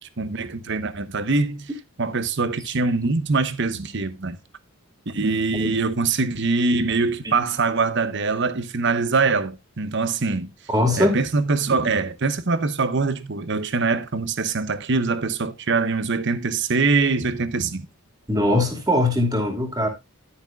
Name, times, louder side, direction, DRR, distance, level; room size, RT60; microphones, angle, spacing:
voice 1, 0.0-1.7 2.0-4.4 5.1-10.5 11.0-17.8, right 4 dB, 55° right, 1.0 m, -23 dB
voice 2, 10.7-11.1 18.3-19.9, left 1 dB, 20° right, 2.6 m, -21 dB
11.0 x 9.8 x 2.3 m
head